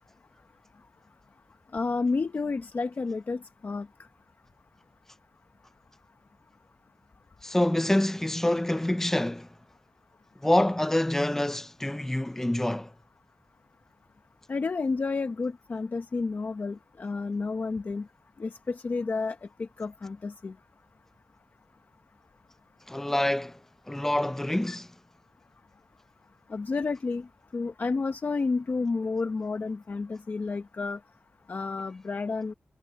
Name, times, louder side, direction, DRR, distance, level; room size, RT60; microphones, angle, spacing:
voice 1, 1.7-3.9 14.5-18.1 18.4-20.5 24.7-24.8 26.5-27.3 27.5-31.0 31.5-32.5, left 4 dB, 50° left, 0.9 m, -31 dB
voice 2, 7.4-9.5 10.4-12.9 22.9-23.6 23.9-24.9, left 1 dB, 10° left, 0.5 m, -26 dB
wide cardioid pair, 130°, 4 cm